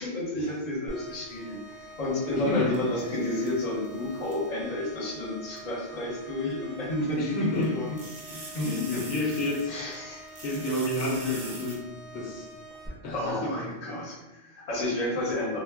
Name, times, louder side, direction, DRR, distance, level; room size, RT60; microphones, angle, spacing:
voice 1, 0.0-8.0 8.5-9.2 9.7-10.4 11.1-11.5 12.9-15.6, left 1 dB, 40° left, -4 dB, 0.7 m, -31 dB
sound 1, 0.9-12.9, equal, 10° left, 0.4 m, -47 dB
voice 2, 2.3-2.7 7.2-7.8 8.3-9.8 10.4-11.8 12.1-12.5 13.0-13.7, left 1 dB, 75° left, -2 dB, 0.9 m, -30 dB
sound 2, 2.7-4.5 5.6-5.7 7.6-10.0 10.3-11.8, right 3 dB, 50° right, 0.5 m, -44 dB
2.1 x 2.1 x 3.3 m, 1.1 s
omnidirectional pair, 1.2 m